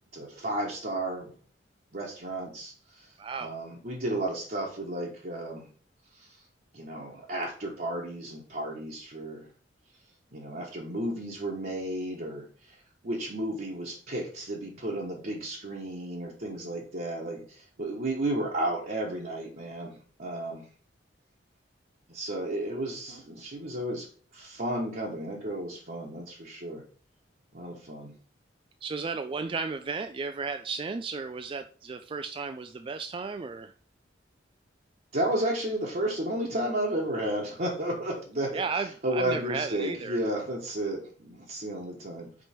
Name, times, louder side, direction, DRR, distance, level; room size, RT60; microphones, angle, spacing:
voice 1, 0.1-1.3 1.9-3.1 3.4-5.7 6.2-6.3 6.7-9.5 10.3-12.5 13.0-20.6 22.1-24.1 24.3-26.8 27.5-28.1 35.1-38.6 39.0-42.4, right 1 dB, 50° right, -4 dB, 1.2 m, -33 dB
voice 2, 3.2-3.5 28.8-33.7 38.5-40.2, right 4 dB, 30° right, 8 dB, 0.3 m, -34 dB
5.3 x 4.5 x 4.4 m, 0.41 s
head